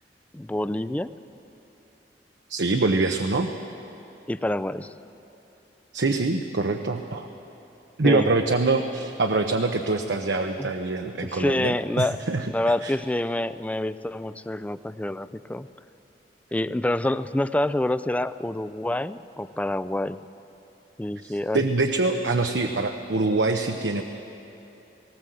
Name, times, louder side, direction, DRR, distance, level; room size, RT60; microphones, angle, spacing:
voice 1, 0.3-1.1 4.3-4.9 8.0-8.3 10.6-10.7 11.2-12.2 12.5-15.7 16.5-20.2 21.0-21.6, left 1 dB, 10° left, 14 dB, 0.4 m, -27 dB
voice 2, 2.5-3.5 5.9-7.3 8.0-12.5 12.8-12.9 21.3-24.0, right 3 dB, 85° right, 5 dB, 0.8 m, -24 dB
19.0 x 18.5 x 7.7 m, 3.0 s
head